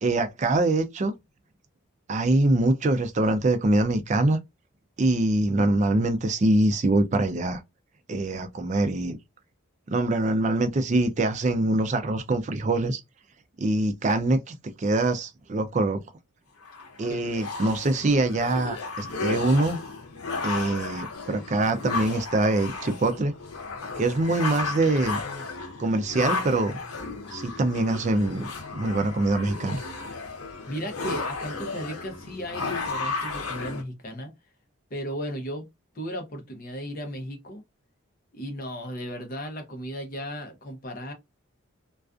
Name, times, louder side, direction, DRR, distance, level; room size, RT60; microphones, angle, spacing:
voice 1, 0.0-1.1 2.1-4.4 5.0-7.6 8.1-9.2 9.9-13.0 13.6-16.0 17.0-19.8 20.4-23.3 24.0-25.2 25.8-26.8 27.3-29.8, right 2 dB, 35° right, 0.3 m, -24 dB
sound 1, 16.6-33.8, left 3 dB, 90° left, 0.7 m, -34 dB
voice 2, 30.3-34.3 34.9-35.7 35.9-37.6 38.3-41.1, equal, 40° left, 0.6 m, -36 dB
2.4 x 2.3 x 2.4 m
head